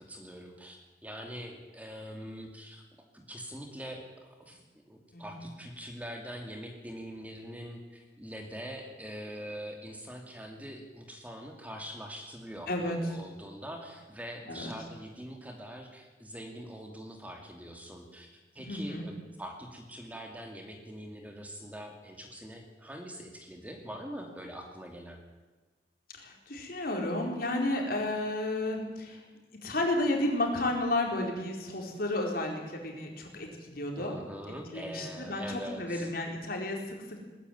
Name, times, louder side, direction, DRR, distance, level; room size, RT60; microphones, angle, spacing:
voice 1, 0.0-2.8 3.1-25.2 34.0-36.1, equal, 10° right, 3 dB, 2.6 m, -43 dB
voice 2, 18.6-19.1 26.1-29.2 29.6-34.1 34.7-37.2, left 1 dB, 55° left, 1 dB, 4.4 m, -32 dB
20.0 x 14.5 x 9.5 m, 1.2 s
head